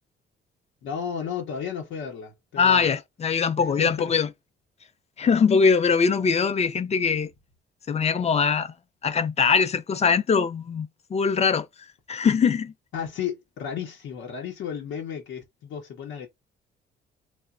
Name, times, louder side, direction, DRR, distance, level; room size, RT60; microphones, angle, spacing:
voice 1, 0.8-2.9 3.8-4.1 12.9-16.3, left 7 dB, 75° left, 0.8 m, -33 dB
voice 2, 2.6-4.3 5.2-7.3 7.9-8.7 9.0-11.7 12.1-12.7, left 5 dB, 35° left, 0.4 m, -22 dB
3.0 x 2.1 x 2.4 m
cardioid pair, 90°, 20 cm